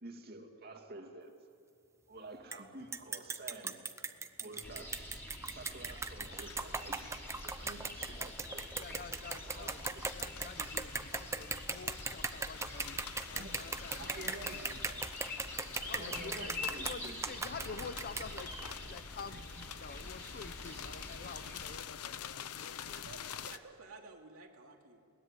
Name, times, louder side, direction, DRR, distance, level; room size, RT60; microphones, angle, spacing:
voice 1, 0.0-1.3 2.1-3.8 4.4-5.1 5.5-7.0 7.4-8.7 9.4-10.0 11.1-11.6 13.3-13.6 14.0-15.1 16.0-17.1, right 2 dB, 45° right, 4 dB, 2.5 m, -49 dB
sound 1, 2.5-2.6 2.9-18.8, right 4 dB, 10° right, 0.7 m, -38 dB
sound 2, 4.6-21.8, left 1 dB, 10° left, 3.0 m, -46 dB
sound 3, 6.4-23.6, left 8 dB, 85° left, 0.8 m, -48 dB
voice 2, 8.8-14.8 15.9-23.0, left 4 dB, 45° left, 12 dB, 0.8 m, -49 dB
voice 3, 22.8-25.0, right 3 dB, 70° right, 1 dB, 2.9 m, -53 dB
21.0 x 19.0 x 9.8 m, 2.4 s
head